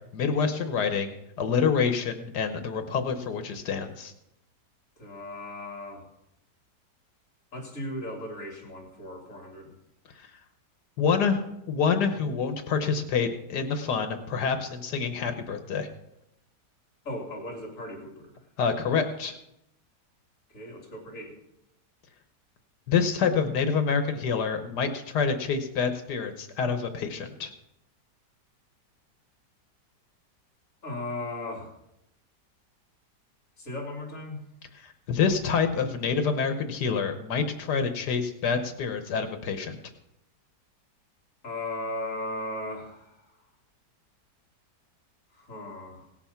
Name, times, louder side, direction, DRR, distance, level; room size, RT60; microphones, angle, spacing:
voice 1, 0.1-4.1 10.2-10.3 11.0-15.9 18.6-19.4 22.9-27.5 34.8-39.8, left 6 dB, 75° left, 7 dB, 1.6 m, -27 dB
voice 2, 5.0-6.1 7.5-9.8 17.0-18.4 20.5-21.3 30.8-31.7 33.6-34.4 41.4-43.2 45.3-46.0, left 1 dB, 50° left, 1 dB, 3.2 m, -37 dB
17.5 x 7.0 x 5.7 m, 0.83 s
omnidirectional pair, 1.8 m